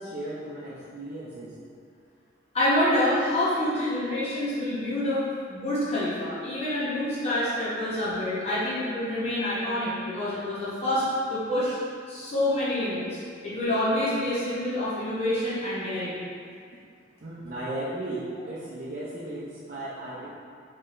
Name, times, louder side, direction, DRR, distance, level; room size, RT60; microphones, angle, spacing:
voice 1, 0.0-1.6 17.2-20.3, right 1 dB, 55° right, -8 dB, 0.5 m, -36 dB
voice 2, 2.5-5.2 5.5-11.8 12.1-16.2, left 1 dB, 35° left, -11 dB, 0.9 m, -27 dB
4.7 x 3.2 x 2.5 m, 2.3 s
head